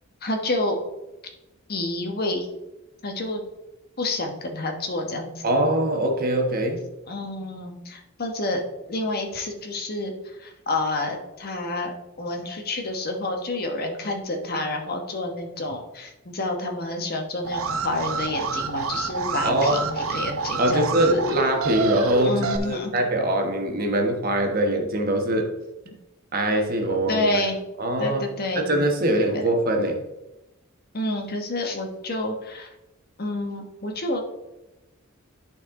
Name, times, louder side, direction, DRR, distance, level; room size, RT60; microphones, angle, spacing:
voice 1, 0.2-0.8 1.7-2.5 3.0-3.4 4.0-5.4 7.1-8.6 8.9-21.2 22.2-22.9 27.1-27.6 28.0-28.7 29.3-29.4 30.9-32.7 33.2-34.2, left 2 dB, 50° left, 3 dB, 1.2 m, -29 dB
voice 2, 5.4-6.8 19.4-19.8 20.6-25.5 26.3-27.4 27.8-28.2 28.5-30.0, right 1 dB, 45° right, 3 dB, 1.2 m, -23 dB
Alarm, 17.4-22.6, right 4 dB, 85° right, 0.7 m, -27 dB
11.5 x 4.3 x 3.7 m, 0.98 s
head